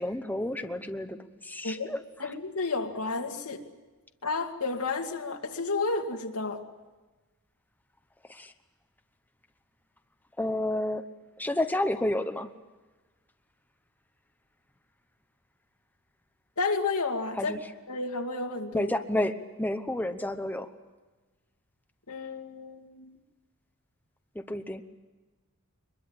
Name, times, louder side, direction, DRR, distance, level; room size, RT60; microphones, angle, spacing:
voice 1, 0.0-2.3 8.2-8.5 10.4-11.0 11.4-12.5 17.3-17.7 18.7-20.7 24.3-24.8, left 1 dB, 10° left, 7 dB, 1.0 m, -31 dB
voice 2, 2.2-3.6 4.2-6.6 16.6-17.5 17.9-18.9 22.1-23.2, left 3 dB, 80° left, 3 dB, 2.3 m, -31 dB
24.0 x 21.5 x 8.9 m, 1.2 s
head